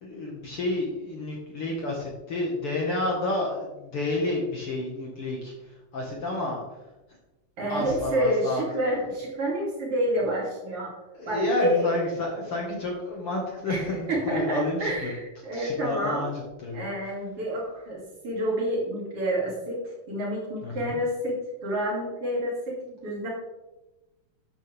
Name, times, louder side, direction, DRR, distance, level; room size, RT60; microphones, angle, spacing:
voice 1, 0.0-6.6 7.7-8.6 11.1-15.1 15.5-16.3 16.6-16.8 20.6-21.0, left 2 dB, 50° left, -2 dB, 2.1 m, -30 dB
voice 2, 7.6-10.9 11.2-11.9 13.7-16.3 16.7-19.8 20.1-23.3, equal, 45° right, -4 dB, 3.5 m, -28 dB
13.0 x 9.0 x 3.5 m, 1.0 s
omnidirectional pair, 3.9 m